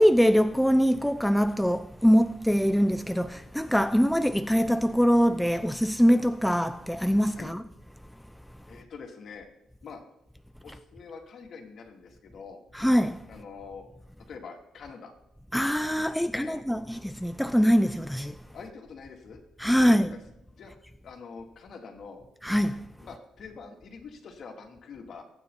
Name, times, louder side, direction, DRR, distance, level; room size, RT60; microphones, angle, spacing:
voice 1, 0.0-7.6 12.7-13.2 15.5-18.4 19.6-20.2 22.4-22.9, equal, ahead, 0.5 m, -23 dB
voice 2, 8.7-9.5 9.8-10.0 10.6-12.6 13.3-13.9 14.3-15.1 16.0-16.6 18.5-19.4 19.8-20.1 20.5-20.7 21.0-22.2 23.0-25.2, left 5 dB, 55° left, 3.1 m, -45 dB
23.5 x 9.5 x 4.2 m
cardioid pair, 125°, 0 cm